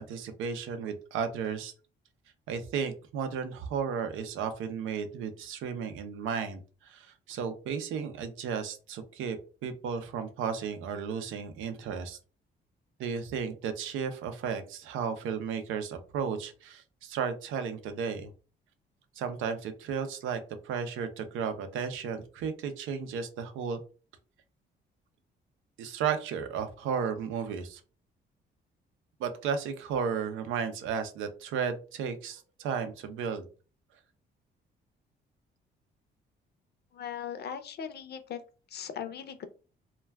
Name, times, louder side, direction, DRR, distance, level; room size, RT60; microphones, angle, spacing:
voice 1, 0.0-1.7 2.5-9.4 9.6-12.2 13.0-18.3 19.2-23.8 25.8-27.8 29.2-33.5, right 6 dB, 85° right, 9 dB, 0.5 m, -34 dB
voice 2, 36.9-38.4 38.7-39.5, left 8 dB, 55° left, 10 dB, 0.5 m, -39 dB
2.2 x 2.2 x 3.3 m, 0.35 s
cardioid pair, 90°, 20 cm